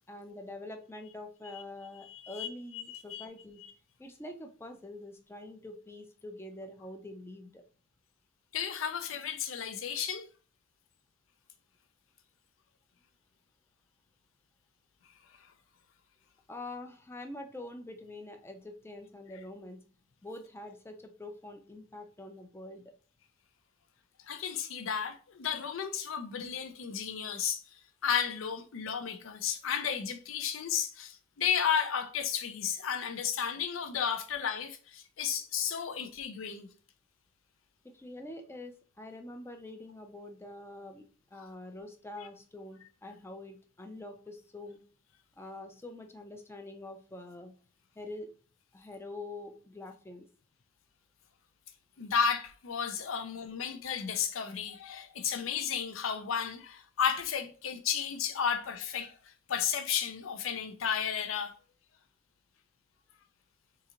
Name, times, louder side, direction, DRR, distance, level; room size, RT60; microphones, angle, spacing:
voice 1, 0.1-3.6 4.0-7.6 16.5-19.8 20.2-22.8 37.9-44.8 45.4-47.5 48.0-48.3 48.7-50.3, left 2 dB, 10° left, 0.4 m, -45 dB
voice 2, 2.1-2.5 2.7-3.3 8.5-10.3 24.2-27.6 28.0-36.7 52.0-61.5, left 7 dB, 80° left, 0.5 m, -33 dB
3.8 x 2.4 x 2.9 m
head